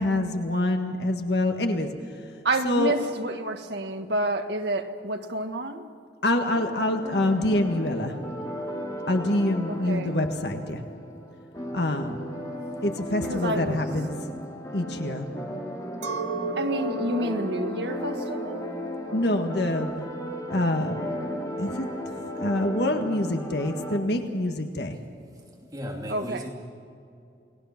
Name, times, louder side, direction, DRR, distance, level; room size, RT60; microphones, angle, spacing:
voice 1, 0.0-1.9 2.6-2.9 6.2-8.2 9.1-10.8 11.7-12.5 12.8-14.2 14.7-15.3 19.1-19.9 20.5-21.2 21.6-25.0, left 1 dB, 65° left, 4 dB, 1.7 m, -26 dB
voice 2, 2.4-5.8 9.7-10.1 13.3-13.8 16.6-18.6 26.1-26.4, right 1 dB, 65° right, 5 dB, 1.7 m, -29 dB
sound 1, 6.5-24.0, equal, 20° left, 2.8 m, -35 dB
Chink clink, 16.0-21.5, right 2 dB, 85° right, 1.1 m, -36 dB
voice 3, 25.7-26.5, equal, 20° right, -1 dB, 2.7 m, -35 dB
29.0 x 20.0 x 6.0 m, 2.5 s
head